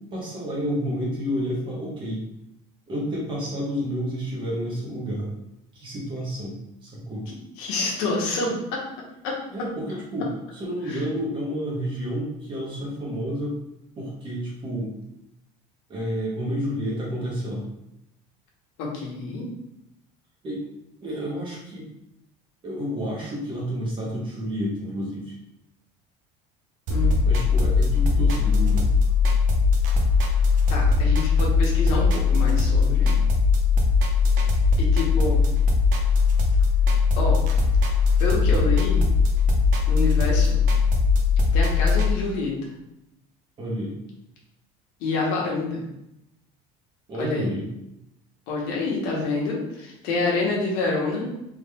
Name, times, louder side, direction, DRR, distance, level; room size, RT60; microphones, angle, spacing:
voice 1, 0.1-2.2 2.9-5.3 5.7-7.3 9.5-13.6 14.0-14.9 15.9-17.6 20.4-20.7 21.0-21.8 22.6-25.3 27.2-28.9 43.6-44.0 47.1-47.7, equal, 30° right, -4 dB, 1.4 m, -30 dB
voice 2, 7.3-8.8 9.2-9.7 10.9-11.0 18.8-19.5 26.9-27.1 30.7-33.1 34.8-35.5 37.2-37.4 38.2-39.1 39.9-40.6 41.5-42.6 45.0-45.9 47.2-47.5 48.5-51.3, left 3 dB, 75° left, -2 dB, 1.2 m, -27 dB
sound 1, 26.9-42.1, left 4 dB, 55° right, 0.8 m, -20 dB
3.7 x 3.0 x 3.4 m, 0.84 s
cardioid pair, 150°, 17 cm